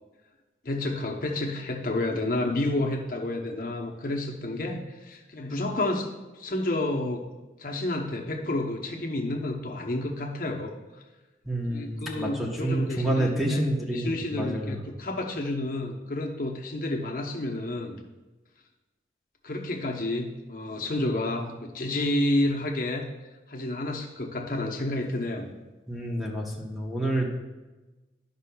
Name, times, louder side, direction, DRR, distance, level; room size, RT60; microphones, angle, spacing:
voice 1, 0.6-6.1 6.4-7.2 7.6-10.7 11.7-13.6 13.9-18.0 19.4-23.1 23.5-25.5, left 1 dB, 50° left, 1 dB, 0.8 m, -30 dB
voice 2, 11.5-14.8 25.9-27.3, right 1 dB, ahead, -2 dB, 0.9 m, -28 dB
13.0 x 5.5 x 2.3 m, 1.1 s
head